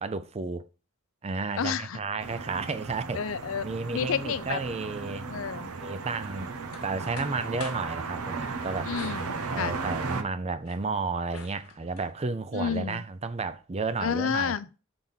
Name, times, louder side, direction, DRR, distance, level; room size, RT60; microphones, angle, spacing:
voice 1, 0.0-0.7 1.2-3.2 3.6-5.3 5.8-6.5 6.8-8.9 9.5-14.5, right 4 dB, 30° right, 0.4 m, -32 dB
voice 2, 1.6-2.0 3.1-3.6 3.9-4.6 5.3-5.7 8.8-9.8 12.5-13.0 14.0-14.6, left 7 dB, 65° left, 0.5 m, -30 dB
sound 1, 2.2-10.2, right 4 dB, 90° right, 0.8 m, -36 dB
sound 2, 6.2-7.9 8.9-10.0 10.4-12.1, left 5 dB, 90° left, 1.3 m, -47 dB
6.0 x 3.5 x 5.6 m
head